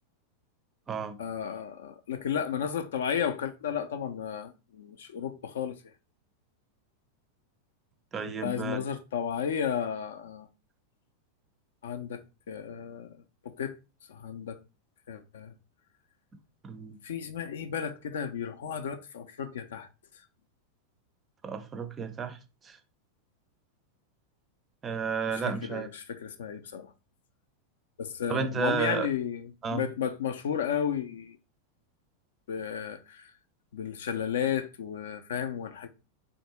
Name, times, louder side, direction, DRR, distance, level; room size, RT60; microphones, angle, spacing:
voice 1, 1.2-5.9 8.4-10.5 11.8-13.1 13.4-13.8 14.1-14.6 15.1-15.5 17.0-19.9 25.3-26.9 28.0-31.4 32.5-33.3 33.7-35.9, left 8 dB, 60° left, 0.4 m, -33 dB
voice 2, 8.1-8.8 16.6-17.0 21.4-22.4 22.6-22.8 24.8-25.9 28.3-29.1 29.6-29.8, right 6 dB, 20° right, 0.5 m, -32 dB
3.3 x 2.6 x 3.0 m
figure-of-eight pair, 90°, 0 cm